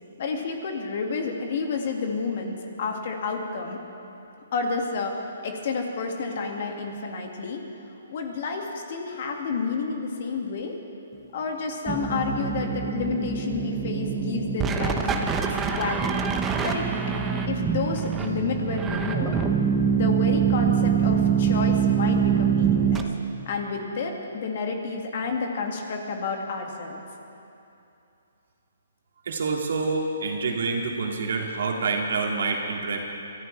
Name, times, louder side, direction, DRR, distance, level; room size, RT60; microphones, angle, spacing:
voice 1, 0.2-3.8 4.5-7.6 8.1-10.7 11.3-15.3 15.7-16.2 16.6-16.9 17.5-19.4 19.9-23.1 23.5-27.0, left 4 dB, 55° left, 2 dB, 2.0 m, -30 dB
sound 1, 11.9-23.0, right 7 dB, 15° right, 0.9 m, -24 dB
voice 2, 29.3-33.0, right 4 dB, 70° right, 1 dB, 2.2 m, -27 dB
24.0 x 14.0 x 3.3 m, 2.8 s
hypercardioid pair, 145°, 0 cm